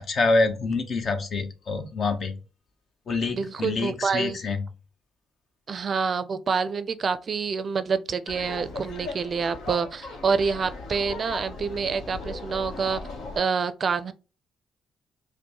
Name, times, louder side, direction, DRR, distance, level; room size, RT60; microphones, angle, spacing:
voice 1, 0.0-2.4 3.1-4.6, left 3 dB, 50° left, 0.8 m, -26 dB
voice 2, 3.3-4.4 5.7-13.0 13.4-14.1, right 5 dB, 45° right, 0.4 m, -27 dB
Laughter, 8.3-13.4, left 3 dB, 85° left, 0.9 m, -38 dB
5.0 x 2.1 x 2.9 m
cardioid pair, 90°, 0 cm